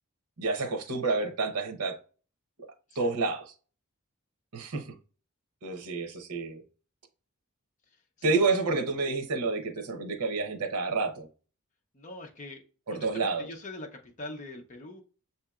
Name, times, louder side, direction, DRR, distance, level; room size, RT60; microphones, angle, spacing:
voice 1, 0.4-2.0 2.9-3.4 4.5-4.9 5.6-6.6 8.2-11.3 12.9-13.5, right 3 dB, 90° right, 0.9 m, -29 dB
voice 2, 7.9-8.4 11.9-12.6 12.9-15.0, left 2 dB, 35° left, 0.7 m, -43 dB
6.9 x 2.8 x 2.3 m
head